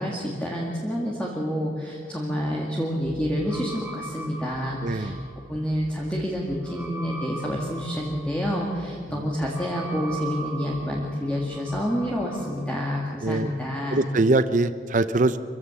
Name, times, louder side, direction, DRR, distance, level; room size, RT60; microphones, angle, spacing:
voice 1, 0.0-5.1 5.5-14.1, equal, 5° left, -3 dB, 2.0 m, -28 dB
sound 1, 3.0-12.5, right 2 dB, 10° right, 3.7 m, -40 dB
voice 2, 4.8-5.2 13.2-13.5 13.9-15.4, right 2 dB, 45° right, 12 dB, 0.6 m, -22 dB
24.5 x 16.0 x 7.1 m, 2.2 s
head